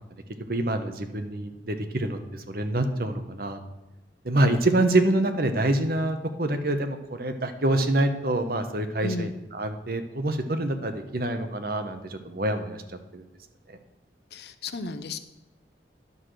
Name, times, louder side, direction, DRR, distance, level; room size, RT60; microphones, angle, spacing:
voice 1, 0.5-3.6 4.2-9.3 9.6-13.2 13.7-13.8, right 1 dB, 55° right, 7 dB, 1.0 m, -26 dB
voice 2, 9.0-9.4 14.3-15.2, left 3 dB, 65° left, 10 dB, 0.7 m, -33 dB
11.0 x 4.9 x 7.6 m, 0.97 s
head